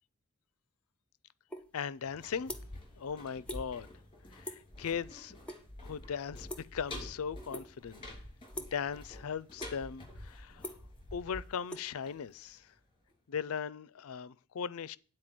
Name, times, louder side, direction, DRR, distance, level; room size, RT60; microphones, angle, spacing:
sound 1, 1.5-1.7 2.0-2.9 3.2-3.6 3.9-4.2 4.4-4.7 5.1-5.6 5.9-7.0 7.5-7.9 8.5-8.9 9.3-10.0 10.3-12.5, left 1 dB, 5° left, 0.9 m, -44 dB
voice 1, 1.7-2.5 3.0-3.9 4.3-5.4 5.8-8.1 8.6-10.7 11.1-12.7 13.3-15.0, left 7 dB, 65° left, 0.4 m, -38 dB
sound 2, 2.0-12.8 13.1-13.2, left 1 dB, 25° left, 2.7 m, -48 dB
9.7 x 4.4 x 7.6 m
head